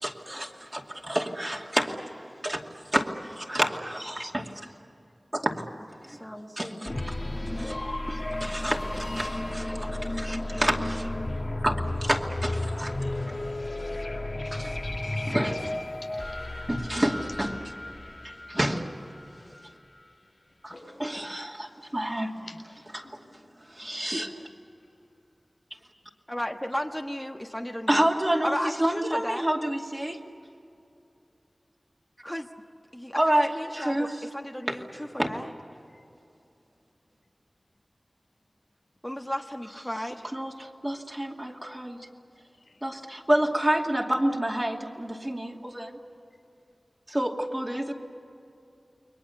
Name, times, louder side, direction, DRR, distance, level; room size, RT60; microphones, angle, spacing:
voice 1, 0.0-2.0 2.4-2.6 2.9-4.7 5.3-5.6 6.0-6.2 6.6-7.1 7.5-7.8 8.1-11.1 11.6-12.9 14.5-14.7 15.2-15.6 16.7-17.6 18.2-18.9 20.6-20.7 21.0-22.3 22.9-23.1 23.7-24.4 27.9-30.2 33.1-33.5 33.7-34.1 34.7-34.8 35.2-35.3 40.3-42.0 42.8-46.0 47.1-47.9, right 1 dB, 25° right, 0 dB, 2.6 m, -29 dB
voice 2, 6.1-7.0 26.3-28.1 28.4-29.5 32.2-32.5 32.9-35.5 39.0-40.3, equal, 10° left, 2 dB, 1.4 m, -34 dB
sound 1, 6.9-19.6, left 1 dB, 40° left, 1.6 m, -33 dB
voice 3, 16.0-16.4 20.7-21.1 22.4-22.6 23.0-23.4 42.7-42.8, left 2 dB, 90° left, 3 dB, 7.0 m, -49 dB
29.5 x 22.5 x 7.1 m, 2.7 s
wide cardioid pair, 60°, 0 cm